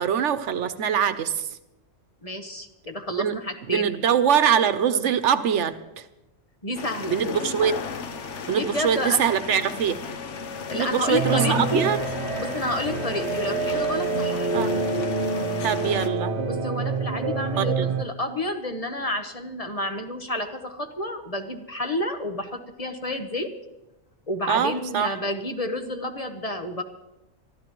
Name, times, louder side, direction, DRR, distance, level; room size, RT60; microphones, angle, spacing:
voice 1, 0.0-1.5 3.2-3.3 3.7-5.8 7.1-7.7 8.5-10.0 10.8-12.0 14.5-14.7 15.6-16.3 17.6-17.9 24.5-25.1, right 8 dB, 85° right, 12 dB, 1.1 m, -23 dB
voice 2, 2.2-3.9 6.6-7.2 8.5-9.2 10.7-11.9 12.4-14.8 16.5-23.5 24.3-26.8, left 1 dB, 35° left, 5 dB, 1.1 m, -30 dB
sound 1, 6.8-16.1, left 4 dB, 80° left, 1.2 m, -34 dB
sound 2, 11.1-18.0, right 4 dB, 65° right, 1.3 m, -27 dB
25.0 x 13.5 x 3.0 m, 0.93 s
omnidirectional pair, 1.2 m